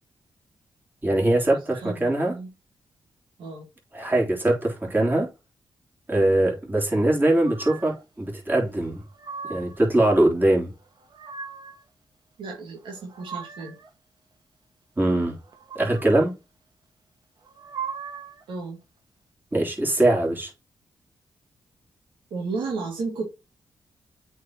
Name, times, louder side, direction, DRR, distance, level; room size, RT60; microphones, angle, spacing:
voice 1, 1.0-2.3 3.9-5.3 6.1-9.0 9.5-10.7 15.0-15.4 15.7-16.3 19.5-20.5, right 1 dB, 25° right, 3.3 m, -22 dB
voice 2, 1.7-2.5 3.4-3.7 12.4-13.8 18.5-18.8 22.3-23.3, right 4 dB, 85° right, 2.0 m, -33 dB
sound 1, 7.4-8.0 8.9-9.9 10.8-11.8 12.8-13.9 15.4-16.3 17.4-18.4, right 6 dB, 60° right, 1.5 m, -39 dB
8.1 x 4.7 x 2.9 m
cardioid pair, 55°, 8 cm